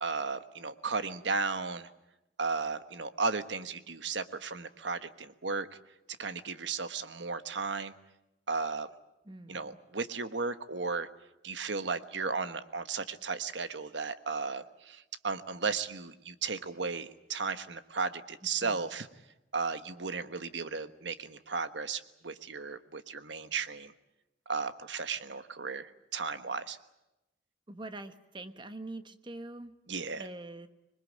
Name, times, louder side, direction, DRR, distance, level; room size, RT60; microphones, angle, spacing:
voice 1, 0.0-1.9 2.4-5.7 6.2-7.9 8.5-8.9 9.5-11.1 11.4-19.1 19.5-23.9 24.5-26.8 29.9-30.2, right 4 dB, 80° right, 11 dB, 1.3 m, -35 dB
voice 2, 9.2-9.8 18.6-18.9 27.7-29.8 30.2-30.7, right 2 dB, 25° right, 10 dB, 1.3 m, -44 dB
26.0 x 21.5 x 8.6 m, 0.95 s
head